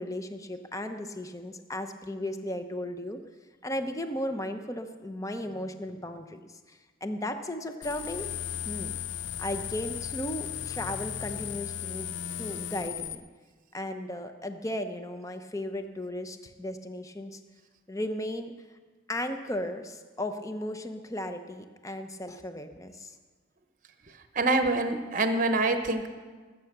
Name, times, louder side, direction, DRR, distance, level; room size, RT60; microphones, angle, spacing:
voice 1, 0.0-3.2 3.6-8.3 8.6-8.9 9.4-13.2 13.7-17.4 17.9-18.5 19.1-23.2, left 1 dB, 15° left, 8 dB, 0.8 m, -35 dB
sound 1, 7.8-13.1, left 10 dB, 60° left, 0.6 m, -36 dB
voice 2, 24.3-26.1, right 2 dB, 40° right, 8 dB, 0.9 m, -25 dB
19.5 x 8.5 x 6.7 m, 1.4 s
head